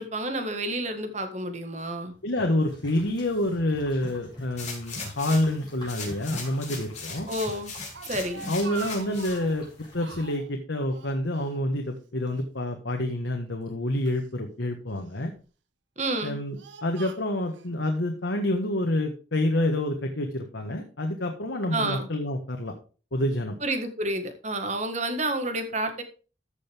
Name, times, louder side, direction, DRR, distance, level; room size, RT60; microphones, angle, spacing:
voice 1, 0.0-2.1 7.3-7.7 8.1-8.4 16.0-16.4 21.7-22.1 23.6-26.0, right 1 dB, 40° right, 7 dB, 1.7 m, -29 dB
sound 1, 2.1-10.0, left 1 dB, 25° left, 4.9 m, -45 dB
voice 2, 2.2-7.3 8.5-9.7 9.9-15.3 16.2-22.7 23.1-23.6, left 1 dB, 90° left, 2 dB, 1.5 m, -28 dB
sound 2, 4.6-5.5 5.9-9.4 9.9-10.0, left 4 dB, 40° left, 4.2 m, -39 dB
Speech, 7.9-9.6 10.0-10.5 10.9-12.0 12.3-12.4 13.3-14.3 15.0-15.4 16.0-17.7, right 6 dB, 80° right, 1.0 m, -44 dB
14.0 x 6.5 x 3.6 m, 0.36 s
head